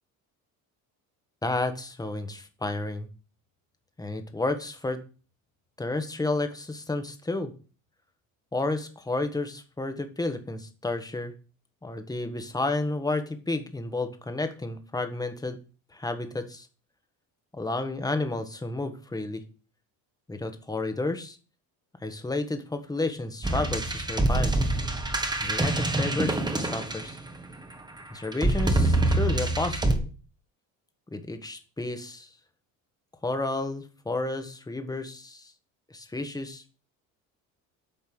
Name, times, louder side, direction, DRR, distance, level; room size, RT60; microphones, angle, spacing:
voice 1, 1.4-3.1 4.0-5.0 5.8-7.5 8.5-11.3 11.8-15.6 15.9-16.7 17.5-19.4 20.3-21.4 22.0-24.5 25.4-27.2 28.1-30.1 31.1-32.3 33.2-35.5 35.9-36.6, left 2 dB, 10° left, 7 dB, 1.4 m, -31 dB
sound 1, 23.4-27.5 28.3-30.0, right 2 dB, 10° right, 1.3 m, -25 dB
8.9 x 5.3 x 6.3 m, 0.37 s
cardioid pair, 110°, 37 cm